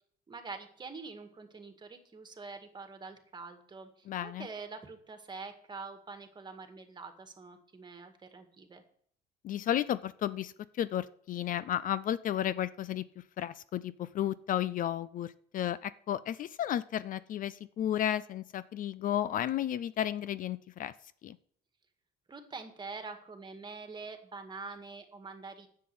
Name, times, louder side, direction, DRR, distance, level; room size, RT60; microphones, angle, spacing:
voice 1, 0.3-8.8 22.3-25.7, right 4 dB, 25° right, 6 dB, 2.0 m, -45 dB
voice 2, 4.1-4.5 9.4-13.1 13.4-20.9 21.2-21.4, left 11 dB, 55° left, 17 dB, 0.5 m, -33 dB
10.0 x 7.8 x 7.0 m, 0.63 s
cardioid pair, 110°, 17 cm